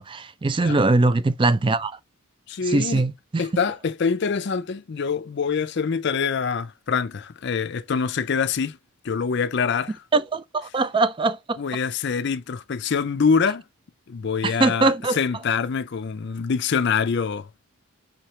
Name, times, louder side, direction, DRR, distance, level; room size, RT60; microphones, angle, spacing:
voice 1, 0.0-1.9 2.6-3.4 10.1-11.6 14.4-15.2, right 3 dB, 20° right, 0.3 m, -22 dB
voice 2, 2.5-3.0 3.4-8.8 9.0-10.0 11.6-13.6 14.1-17.5, left 5 dB, 50° left, 0.4 m, -25 dB
5.6 x 2.9 x 3.2 m
head